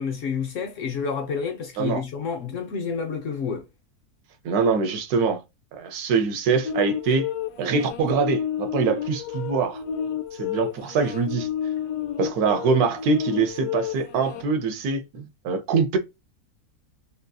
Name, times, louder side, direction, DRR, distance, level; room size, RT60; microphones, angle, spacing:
voice 1, 0.0-3.7, left 6 dB, 60° left, 1.0 m, -29 dB
voice 2, 4.4-5.4 5.7-7.3 7.6-9.8 10.3-11.5 12.2-16.0, right 5 dB, 75° right, 1.1 m, -24 dB
sound 1, 6.6-14.4, left 9 dB, 80° left, 1.1 m, -31 dB
3.7 x 2.7 x 2.2 m
omnidirectional pair, 1.7 m